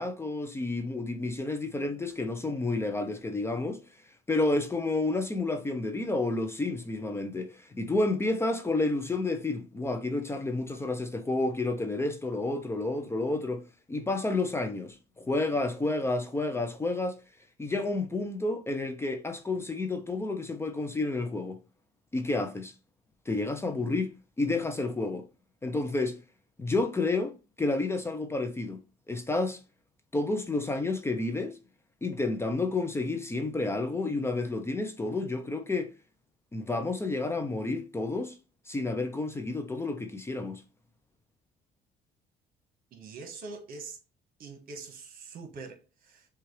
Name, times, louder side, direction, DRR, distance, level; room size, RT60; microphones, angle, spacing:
voice 1, 0.0-3.8 4.3-13.6 13.9-17.2 17.6-21.6 22.1-22.7 23.3-25.3 25.6-26.2 26.6-28.8 29.1-29.6 30.1-31.6 32.0-35.9 36.5-38.4 38.7-40.6, left 2 dB, 15° left, 0.5 m, -30 dB
voice 2, 42.9-44.0 44.4-46.3, right 4 dB, 60° right, 1.3 m, -44 dB
5.9 x 2.4 x 3.1 m
cardioid pair, 110°, 17 cm